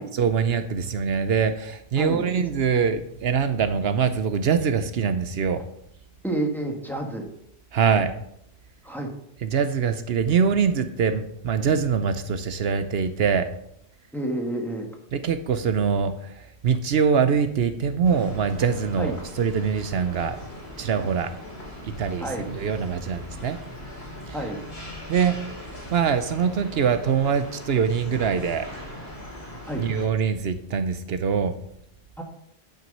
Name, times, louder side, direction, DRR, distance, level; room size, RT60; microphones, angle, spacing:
voice 1, 0.1-5.6 7.7-8.1 9.4-13.5 15.1-16.3 16.6-19.1 19.4-20.4 20.8-21.3 21.9-23.6 25.1-25.3 25.9-28.7 29.8-31.5, right 6 dB, 75° right, 10 dB, 1.0 m, -23 dB
voice 2, 6.2-7.3 8.8-9.1 14.1-14.9 19.0-19.2 22.2-22.5 24.3-24.6 29.7-29.8 32.2-32.3, right 1 dB, ahead, 1 dB, 1.7 m, -29 dB
sound 1, 18.0-30.1, left 1 dB, 85° left, 3.3 m, -40 dB
10.5 x 6.1 x 5.4 m, 0.75 s
omnidirectional pair, 1.0 m